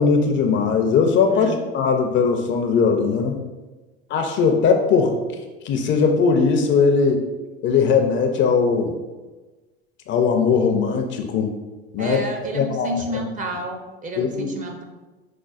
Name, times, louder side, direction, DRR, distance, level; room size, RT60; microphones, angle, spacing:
voice 1, 0.0-3.4 4.1-5.2 5.6-7.2 7.6-8.9 10.1-11.5 11.9-12.2 12.5-12.9 14.2-14.5, left 5 dB, 40° left, 4 dB, 0.4 m, -19 dB
voice 2, 12.0-14.8, right 1 dB, 25° right, 3 dB, 0.5 m, -30 dB
5.0 x 2.1 x 2.4 m, 1.2 s
hypercardioid pair, 90°, 30 cm